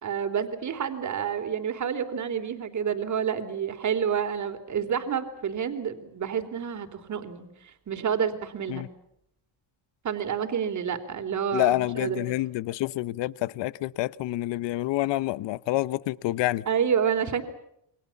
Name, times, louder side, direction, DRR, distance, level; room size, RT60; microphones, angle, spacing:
voice 1, 0.0-8.8 10.0-12.2 16.7-17.4, right 7 dB, 40° right, 3.4 m, -29 dB
voice 2, 11.5-16.7, left 16 dB, 75° left, 0.9 m, -28 dB
29.0 x 24.5 x 7.2 m
cardioid pair, 150°, 43 cm